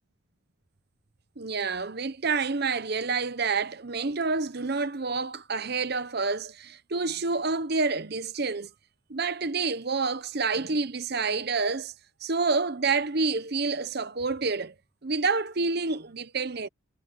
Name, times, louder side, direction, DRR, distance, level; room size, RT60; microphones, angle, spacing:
voice 1, 1.4-8.7 9.1-11.9 12.2-14.7 15.0-16.7, right 4 dB, 50° right, 0.9 m, -28 dB
head